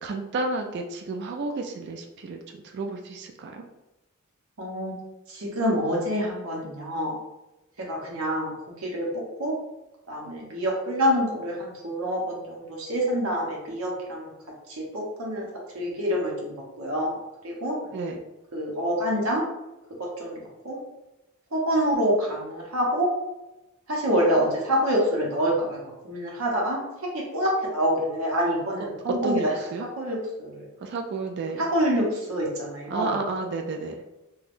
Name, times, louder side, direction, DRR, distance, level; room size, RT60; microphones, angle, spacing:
voice 1, 0.0-3.6 17.9-18.2 28.8-28.9 29.2-29.9 30.8-31.6 32.9-34.0, right 3 dB, 50° right, 3 dB, 0.3 m, -31 dB
voice 2, 4.6-4.9 5.3-7.2 7.9-8.5 8.8-9.5 10.1-14.3 14.8-15.5 15.7-17.8 18.5-19.4 20.2-20.4 20.6-20.8 21.5-23.1 23.9-25.8 26.0-26.8 27.1-29.5 30.0-30.6 31.6-33.2, equal, 75° right, -2 dB, 0.8 m, -26 dB
3.4 x 2.2 x 2.5 m, 0.97 s
head